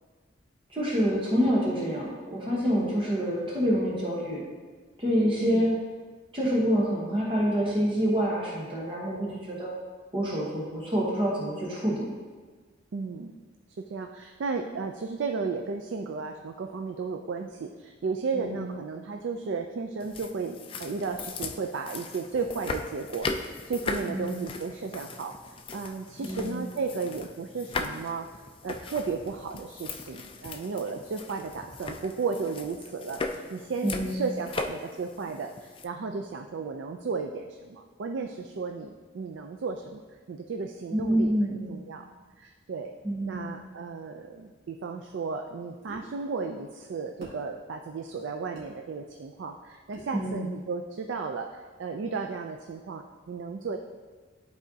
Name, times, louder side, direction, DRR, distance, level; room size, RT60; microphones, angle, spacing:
voice 1, 0.7-4.4 5.0-5.7 6.3-9.7 10.1-12.1 18.4-18.7 24.1-24.5 26.2-26.6 33.8-34.2 40.9-41.7 43.0-43.6 50.1-50.5, equal, 25° right, -5 dB, 1.0 m, -27 dB
voice 2, 12.9-13.4 13.8-25.4 25.7-28.3 28.6-40.0 40.3-42.1 42.4-42.9 43.3-51.5 51.8-53.8, right 4 dB, 65° right, 4 dB, 0.4 m, -34 dB
sound 1, 20.0-35.8, left 3 dB, 30° left, 0.4 m, -38 dB
sound 2, 45.9-46.1 47.2-47.4 48.6-48.7 49.9-50.2, equal, 50° right, 2.0 m, -45 dB
11.5 x 4.1 x 2.7 m, 1.4 s
head